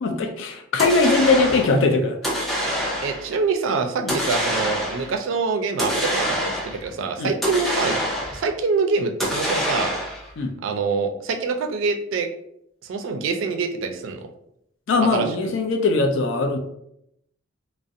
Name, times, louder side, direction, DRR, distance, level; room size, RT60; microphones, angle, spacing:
voice 1, 0.0-2.4 4.0-4.2 7.2-7.3 10.4-10.5 14.9-16.6, left 3 dB, 70° left, 5 dB, 0.4 m, -21 dB
sound 1, 0.8-1.8 2.2-3.3 4.1-5.1 5.8-6.8 7.4-8.5 9.2-10.3, equal, ahead, 0.5 m, -25 dB
voice 2, 3.0-6.4 6.6-8.0 8.3-9.9 10.6-12.3 12.9-14.2 15.1-15.3, right 4 dB, 70° right, 5 dB, 0.4 m, -25 dB
2.4 x 2.0 x 2.6 m, 0.76 s
head